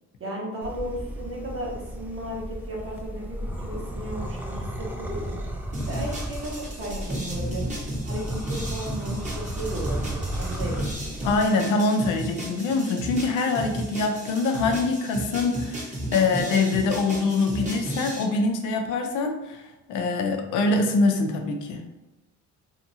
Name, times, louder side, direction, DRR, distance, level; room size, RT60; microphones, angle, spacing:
voice 1, 0.2-5.5 5.9-7.6 8.0-8.2 8.5-11.5, right 1 dB, 45° right, -4 dB, 1.1 m, -35 dB
sound 1, 0.6-11.5, right 1 dB, 5° right, 0.4 m, -34 dB
sound 2, 5.7-18.2, right 1 dB, 25° right, 1.0 m, -34 dB
voice 2, 11.2-19.6 19.9-21.8, left 3 dB, 90° left, 4 dB, 0.5 m, -24 dB
2.8 x 2.6 x 2.7 m, 1.0 s
cardioid pair, 90°, 30 cm